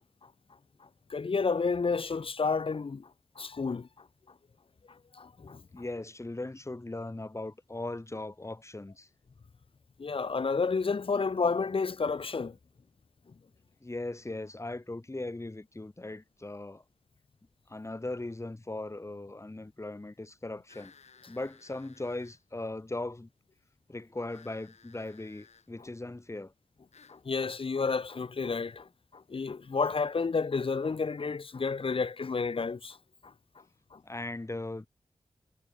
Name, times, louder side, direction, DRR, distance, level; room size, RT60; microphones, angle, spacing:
voice 1, 1.1-3.1 3.4-3.9 5.1-5.6 10.0-12.6 27.1-33.0 33.2-33.3 33.9-34.0, left 4 dB, 55° left, 1.3 m, -30 dB
voice 2, 5.7-9.1 13.8-16.8 17.7-20.9 21.3-23.3 23.9-26.5 34.0-34.9, left 2 dB, 25° left, 6.3 m, -39 dB
sound 1, 20.7-22.4 24.3-25.7 26.9-27.2, left 5 dB, 85° left, 5.8 m, -58 dB
wide cardioid pair, 90°, 11 cm